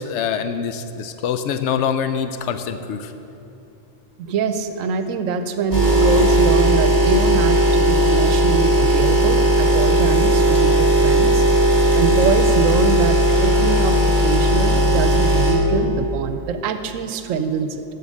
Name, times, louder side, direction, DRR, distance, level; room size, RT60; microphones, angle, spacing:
voice 1, 0.0-3.1, left 7 dB, 70° left, 9 dB, 0.8 m, -24 dB
voice 2, 4.2-11.4 11.9-17.8, right 5 dB, 85° right, 9 dB, 1.0 m, -24 dB
sound 1, 5.7-15.5, right 1 dB, 15° right, 2.1 m, -16 dB
12.5 x 4.3 x 6.4 m, 2.8 s
omnidirectional pair, 1.3 m